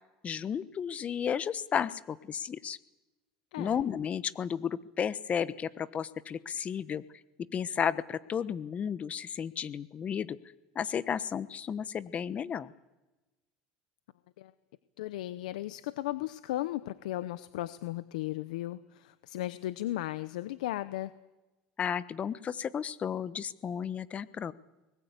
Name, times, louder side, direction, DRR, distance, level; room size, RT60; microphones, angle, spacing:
voice 1, 0.2-2.8 3.6-7.0 7.5-10.4 10.7-12.7 21.8-24.5, left 8 dB, 35° left, 15 dB, 1.1 m, -33 dB
voice 2, 15.0-21.1, left 15 dB, 90° left, 14 dB, 0.8 m, -36 dB
24.5 x 20.5 x 8.2 m, 1.1 s
supercardioid pair, 100°, 4 cm